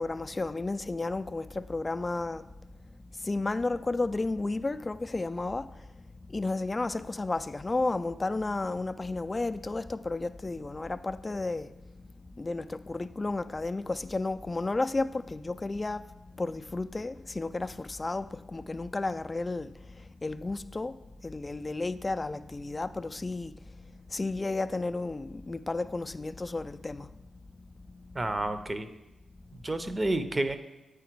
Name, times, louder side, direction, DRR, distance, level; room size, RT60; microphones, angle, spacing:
voice 1, 0.0-2.4 3.3-5.6 6.3-11.7 12.4-16.0 16.4-19.7 20.2-20.9 21.2-23.5 24.1-27.1, left 2 dB, 30° left, 0.3 m, -32 dB
voice 2, 28.1-28.9 29.5-30.6, right 2 dB, 30° right, 0.6 m, -30 dB
8.3 x 4.9 x 4.6 m
supercardioid pair, 50°, 0 cm